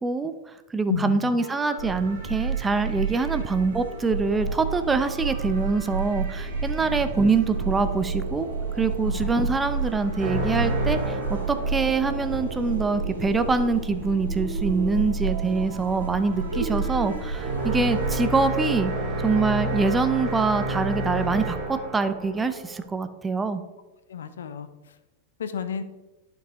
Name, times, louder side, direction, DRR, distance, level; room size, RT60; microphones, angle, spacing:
voice 1, 0.0-8.5 8.8-18.9 19.2-23.6, right 4 dB, 15° right, 10 dB, 0.5 m, -25 dB
sound 1, 1.4-20.6, right 4 dB, 55° right, 2.5 m, -43 dB
sound 2, 1.8-18.1, right 4 dB, 80° right, 2.4 m, -30 dB
sound 3, 10.2-12.2 17.3-23.0, right 1 dB, 30° right, 2.9 m, -29 dB
voice 2, 24.1-24.7 25.4-25.8, left 7 dB, 65° left, 11 dB, 0.6 m, -31 dB
11.5 x 5.3 x 3.0 m, 1.1 s
figure-of-eight pair, 90°, 0 cm